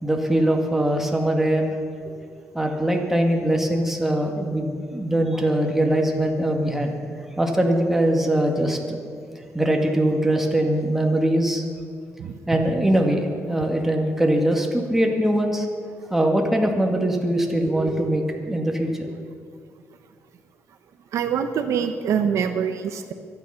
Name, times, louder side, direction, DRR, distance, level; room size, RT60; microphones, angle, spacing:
voice 1, 0.0-1.7 2.5-6.9 7.4-9.0 9.5-11.7 12.5-15.7 16.1-19.1, right 1 dB, 5° right, 1 dB, 1.9 m, -22 dB
voice 2, 21.1-23.1, right 7 dB, 75° right, 8 dB, 0.9 m, -24 dB
23.5 x 9.4 x 5.8 m, 2.2 s
cardioid pair, 130°, 5 cm